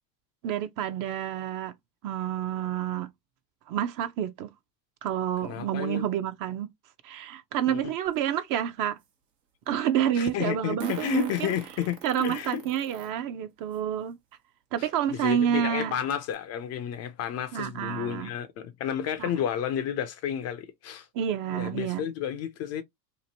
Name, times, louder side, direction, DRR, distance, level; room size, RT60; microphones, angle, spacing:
voice 1, 0.4-1.7 2.0-3.1 3.7-4.5 5.0-6.7 7.0-9.0 9.7-11.5 12.0-14.2 14.7-15.9 17.5-18.3 19.2-19.3 21.1-22.1, right 10 dB, 45° right, 0.5 m, -29 dB
voice 2, 5.4-6.0 7.7-7.8 10.1-12.6 14.8-21.1 21.5-22.8, left 9 dB, 35° left, 0.4 m, -31 dB
Fart, 8.1-8.2 10.8-13.1 13.7-13.8 15.1-15.2 15.6-15.7 16.1-16.3, right 7 dB, 85° right, 1.0 m, -41 dB
2.9 x 2.5 x 2.7 m
hypercardioid pair, 85°, 48 cm